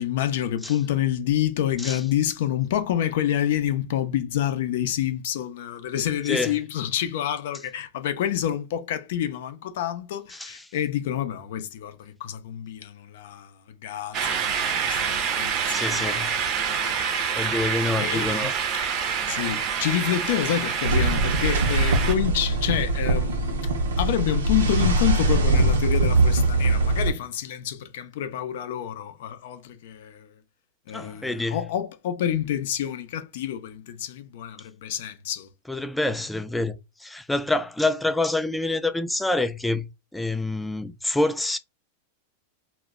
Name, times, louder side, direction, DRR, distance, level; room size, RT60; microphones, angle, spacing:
voice 1, 0.0-17.3 18.0-18.5 19.3-23.7 24.0-30.3 30.9-35.5, left 11 dB, 70° left, 0.5 m, -28 dB
voice 2, 10.3-10.6 15.7-16.4 17.4-18.5 30.9-31.6 35.7-39.9 40.1-41.6, left 2 dB, 5° left, 0.3 m, -27 dB
sound 1, 14.1-22.1, right 7 dB, 45° right, 0.5 m, -27 dB
sound 2, 20.8-27.1, right 2 dB, 90° right, 0.6 m, -22 dB
2.1 x 2.0 x 3.5 m
hypercardioid pair, 115°, 0 cm